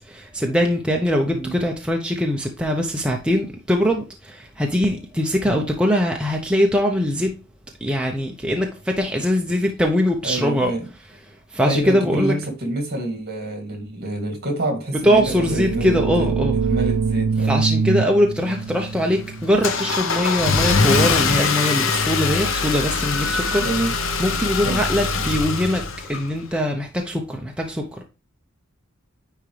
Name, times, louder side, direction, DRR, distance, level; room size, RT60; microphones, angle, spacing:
voice 1, 0.1-7.3 7.8-10.7 11.5-12.4 15.0-16.5 17.4-23.7 24.2-28.0, equal, 5° right, 0.7 m, -22 dB
voice 2, 10.2-10.9 11.6-16.3 16.7-17.6 23.6-23.9 24.6-24.8, right 1 dB, 50° right, 2.4 m, -27 dB
sound 1, 15.1-20.6, right 5 dB, 75° right, 0.4 m, -25 dB
Car / Engine starting, 18.4-26.6, left 4 dB, 65° left, 1.0 m, -23 dB
9.8 x 3.6 x 3.2 m
head